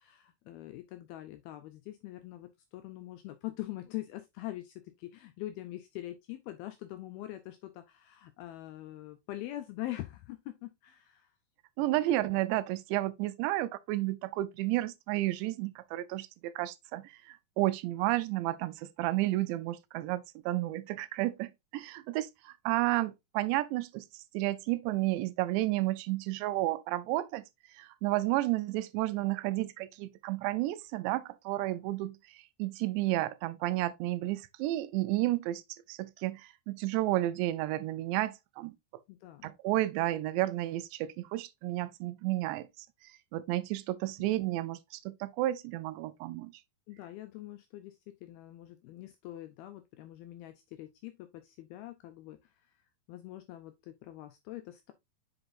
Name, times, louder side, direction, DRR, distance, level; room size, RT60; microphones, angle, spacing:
voice 1, 0.0-11.3 11.8-11.9 39.1-39.5 46.9-52.7 53.1-54.9, left 15 dB, 80° left, 2.2 m, -44 dB
voice 2, 11.8-24.1 24.3-27.4 27.8-32.2 32.6-35.6 35.9-38.8 39.4-42.7 43.3-44.8 45.1-46.6, right 16 dB, 85° right, 2.8 m, -32 dB
7.9 x 5.8 x 2.5 m
omnidirectional pair, 5.0 m